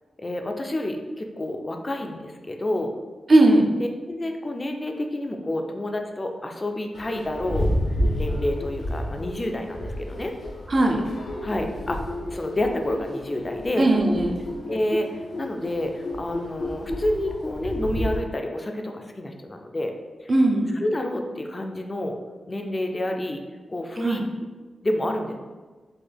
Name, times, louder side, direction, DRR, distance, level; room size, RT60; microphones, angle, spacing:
voice 1, 0.2-2.9 3.8-7.7 8.1-10.3 11.4-12.0 12.3-13.9 14.7-15.1 15.4-19.9 20.2-20.3 20.7-22.1 22.5-23.4 23.7-24.3 24.8-25.4, left 1 dB, 25° left, 4 dB, 0.4 m, -29 dB
voice 2, 3.3-3.7 10.7-11.0 13.8-14.4 20.3-20.7 24.0-24.2, right 2 dB, 40° right, 2 dB, 0.4 m, -18 dB
sound 1, 6.9-18.2, left 1 dB, 75° left, 0.8 m, -30 dB
3.8 x 2.2 x 3.3 m, 1.3 s
wide cardioid pair, 105°, 0 cm